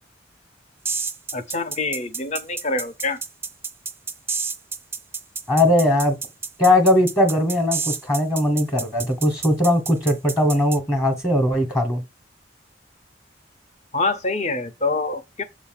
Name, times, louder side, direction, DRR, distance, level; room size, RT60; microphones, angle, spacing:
sound 1, 0.8-10.8, right 5 dB, 15° right, 0.4 m, -29 dB
voice 1, 1.3-3.2 13.9-15.4, left 3 dB, 40° left, 0.8 m, -25 dB
voice 2, 5.5-6.1 6.6-12.0, left 1 dB, 20° left, 1.1 m, -19 dB
7.1 x 2.7 x 5.7 m
head